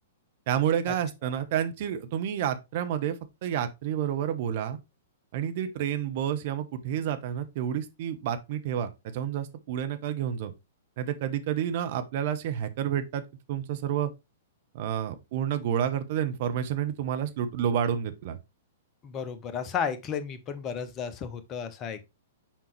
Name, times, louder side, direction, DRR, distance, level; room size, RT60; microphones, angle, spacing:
voice 1, 0.5-4.8 5.3-10.5 11.0-13.2 13.5-14.1 14.7-18.4, right 9 dB, 50° right, 1.0 m, -29 dB
voice 2, 19.0-22.0, left 7 dB, 30° left, 1.1 m, -33 dB
7.3 x 5.4 x 3.2 m
figure-of-eight pair, 105°, 0 cm